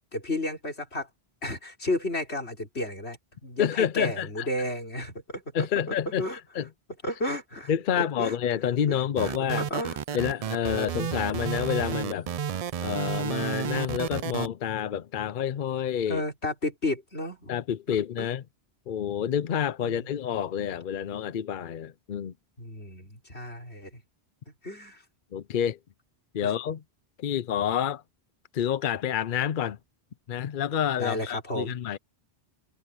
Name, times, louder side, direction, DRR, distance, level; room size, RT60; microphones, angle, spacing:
voice 1, 0.1-1.1 1.4-6.4 7.0-7.7 8.0-8.4 8.9-10.2 11.2-11.3 16.1-17.5 17.9-18.3 19.8-20.1 22.6-24.0 24.6-25.0 26.4-26.5 31.0-31.8, left 1 dB, 90° left, 5.3 m, -33 dB
voice 2, 3.6-4.5 5.5-6.2 6.5-6.7 7.7-9.6 10.1-12.3 12.8-16.2 17.5-18.4 18.9-22.3 25.3-25.8 26.3-26.8 27.2-28.0 28.5-29.8 30.3-32.0, left 9 dB, 55° left, 0.7 m, -28 dB
sound 1, 9.2-14.5, right 8 dB, 55° right, 0.4 m, -31 dB
omnidirectional pair, 1.1 m